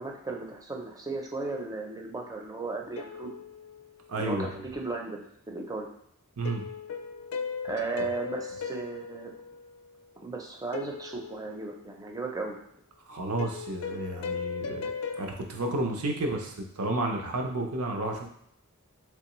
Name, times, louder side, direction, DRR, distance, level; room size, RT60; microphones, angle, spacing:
voice 1, 0.0-3.3 4.2-5.9 7.6-9.3 10.2-12.6, right 3 dB, 15° right, 1 dB, 0.5 m, -36 dB
sound 1, 3.0-4.5 6.4-10.1 10.7-12.2 13.4-15.2, left 5 dB, 80° left, 0.4 m, -38 dB
voice 2, 4.1-4.6 6.4-6.6 13.1-14.9 15.2-18.3, right 2 dB, 75° right, 2 dB, 0.6 m, -31 dB
3.4 x 3.1 x 3.0 m, 0.72 s
head